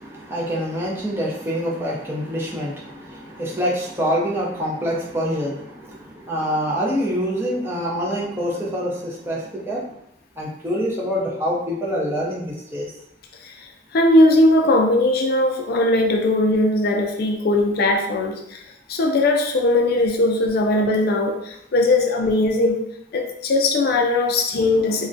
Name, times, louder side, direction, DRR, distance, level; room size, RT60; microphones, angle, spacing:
voice 1, 0.0-9.8 10.4-12.9, equal, 15° right, -5 dB, 0.5 m, -26 dB
voice 2, 13.9-18.6 18.9-22.8 23.1-25.1, left 2 dB, 55° left, 2 dB, 0.4 m, -19 dB
2.3 x 2.1 x 2.5 m, 0.74 s
head